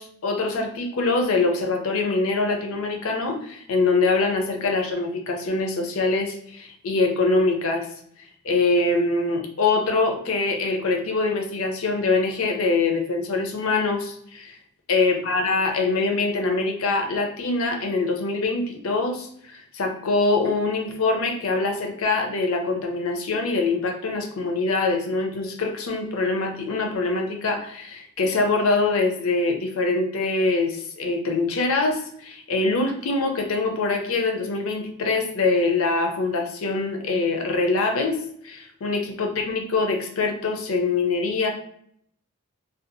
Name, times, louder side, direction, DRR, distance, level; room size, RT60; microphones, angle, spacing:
voice 1, 0.0-7.9 8.4-14.6 14.9-41.5, left 3 dB, 65° left, 3 dB, 0.5 m, -24 dB
2.6 x 2.3 x 2.5 m, 0.67 s
head